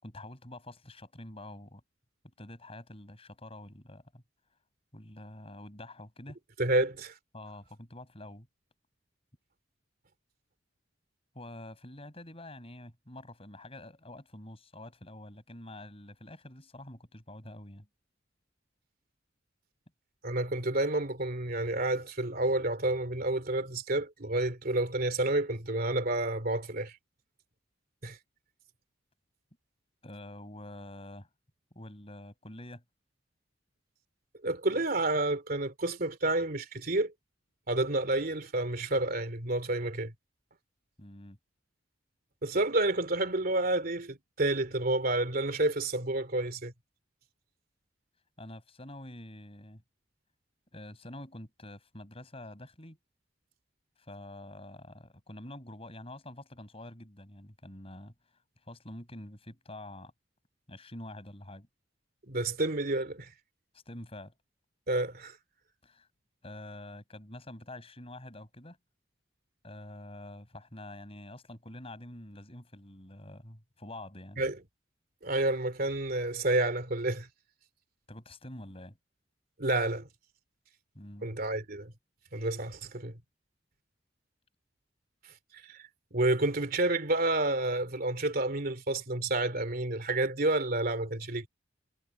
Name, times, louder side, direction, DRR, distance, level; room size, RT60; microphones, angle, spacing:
voice 1, 0.0-1.8 2.2-4.2 4.9-6.4 7.3-8.5 11.3-17.9 30.0-31.3 31.7-32.8 41.0-41.4 48.4-49.8 50.7-53.0 54.0-58.1 58.7-60.1 60.7-61.7 63.8-64.3 65.8-66.1 66.4-68.8 69.6-74.4 78.1-79.0 80.9-81.3, left 1 dB, 30° left, 6.6 m, -47 dB
voice 2, 6.6-7.1 20.2-27.0 28.0-28.2 34.4-37.1 37.7-40.1 42.4-46.7 62.3-63.3 64.9-65.4 74.4-74.6 75.2-77.3 79.6-80.1 81.2-81.9 82.3-83.2 85.7-85.8 86.1-91.5, right 2 dB, 50° right, 3.0 m, -29 dB
head